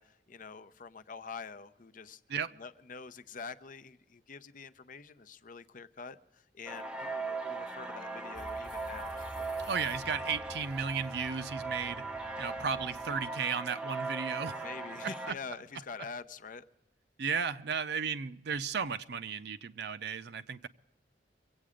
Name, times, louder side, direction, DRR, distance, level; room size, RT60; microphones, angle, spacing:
voice 1, 0.0-2.2 2.6-9.4 14.6-16.6, left 5 dB, 50° left, 13 dB, 0.7 m, -46 dB
sound 1, 6.7-15.3, right 3 dB, 5° right, 0.6 m, -39 dB
sound 2, 8.3-13.3, equal, 25° left, 1.1 m, -51 dB
voice 2, 9.7-12.0 12.4-14.7 15.3-15.4 17.2-20.7, right 6 dB, 65° right, 10 dB, 0.5 m, -34 dB
24.0 x 8.6 x 5.0 m, 0.91 s
head